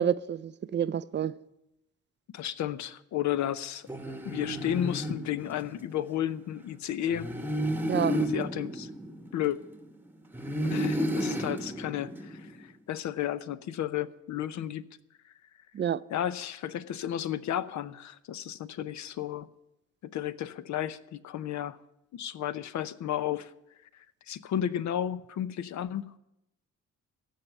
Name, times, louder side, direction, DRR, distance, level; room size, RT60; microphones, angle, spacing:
voice 1, 0.0-1.3 7.9-8.2 15.8-16.0, right 9 dB, 40° right, 0.4 m, -28 dB
voice 2, 2.3-3.9 4.2-7.3 8.1-8.9 9.3-9.6 10.6-14.8 15.2-15.3 16.1-19.5 20.0-21.8 22.1-23.5 23.9-26.2, left 11 dB, 70° left, 0.7 m, -33 dB
sound 1, 3.9-6.0 7.1-9.8 10.3-12.6, equal, 5° right, 1.0 m, -32 dB
15.0 x 5.6 x 9.9 m
cardioid pair, 90°, 30 cm